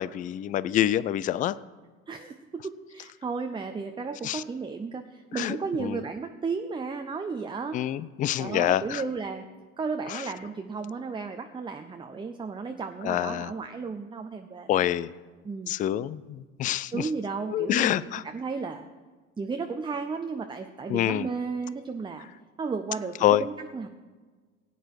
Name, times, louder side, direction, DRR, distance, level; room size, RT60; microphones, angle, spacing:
voice 1, 0.0-1.5 4.2-4.4 5.3-6.0 7.7-9.0 10.1-10.2 13.0-13.5 14.7-15.1 15.7-17.1 17.5-18.2 20.9-21.3 23.2-23.4, left 12 dB, 20° left, 18 dB, 0.3 m, -26 dB
voice 2, 2.1-7.8 8.4-9.4 9.8-14.9 15.4-15.7 16.9-18.9 19.4-22.3 22.6-23.9, right 4 dB, 10° right, 6 dB, 0.6 m, -34 dB
17.0 x 9.1 x 4.8 m, 1.4 s
figure-of-eight pair, 70°, 40 cm